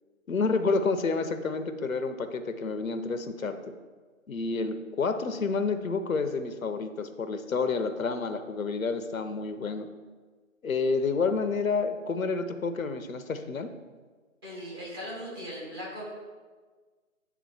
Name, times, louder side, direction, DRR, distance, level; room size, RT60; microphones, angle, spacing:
voice 1, 0.3-3.6 4.3-9.9 10.6-13.7, left 4 dB, 70° left, 9 dB, 0.7 m, -29 dB
voice 2, 14.4-16.1, equal, 15° right, -6 dB, 1.1 m, -38 dB
8.3 x 3.6 x 4.6 m, 1.4 s
figure-of-eight pair, 155°, 42 cm